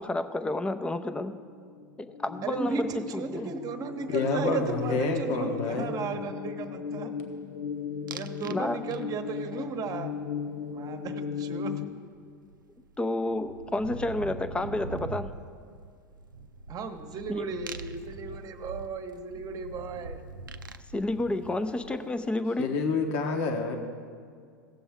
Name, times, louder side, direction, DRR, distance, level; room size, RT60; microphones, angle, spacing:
voice 1, 0.0-1.4 2.0-3.5 8.4-8.8 13.0-15.3 17.3-17.5 20.9-22.7, left 2 dB, 10° left, 11 dB, 0.6 m, -30 dB
sound 1, 1.3-11.9, left 7 dB, 85° left, 0.6 m, -37 dB
voice 2, 2.4-7.1 8.1-10.1 10.7-11.9 16.7-20.2, right 4 dB, 35° right, 7 dB, 1.0 m, -35 dB
voice 3, 4.1-5.9 22.6-23.8, left 4 dB, 55° left, 4 dB, 1.1 m, -28 dB
sound 2, 8.1-8.6 8.9-9.4 11.8-11.9 12.1-22.2, right 3 dB, 90° right, 0.5 m, -43 dB
17.5 x 7.0 x 3.5 m, 2.1 s
hypercardioid pair, 90°, 10 cm